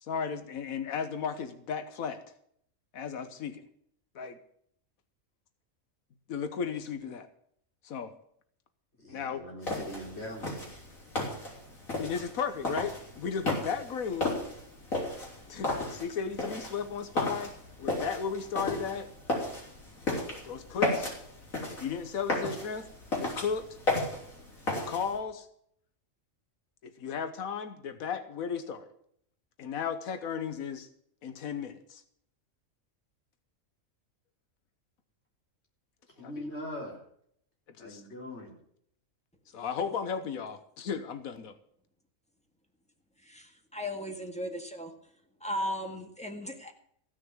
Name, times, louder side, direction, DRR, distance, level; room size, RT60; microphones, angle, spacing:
voice 1, 0.0-2.2 2.9-3.7 4.1-4.4 6.3-7.3 7.8-8.1 9.1-9.4 12.0-14.3 15.5-19.1 20.4-21.1 21.8-22.9 23.2-23.8 24.7-25.5 26.8-28.9 29.6-30.9 31.2-32.0 36.2-36.4 37.8-38.0 39.5-41.5, left 6 dB, 90° left, 10 dB, 1.4 m, -35 dB
voice 2, 9.0-10.8 36.2-37.0 37.8-38.5, left 1 dB, 50° left, -1 dB, 4.3 m, -41 dB
sound 1, 9.6-25.2, left 2 dB, 75° left, 4.6 m, -34 dB
voice 3, 43.2-44.9 45.4-46.7, equal, 5° left, 4 dB, 1.7 m, -36 dB
15.5 x 6.3 x 9.0 m, 0.67 s
omnidirectional pair, 1.4 m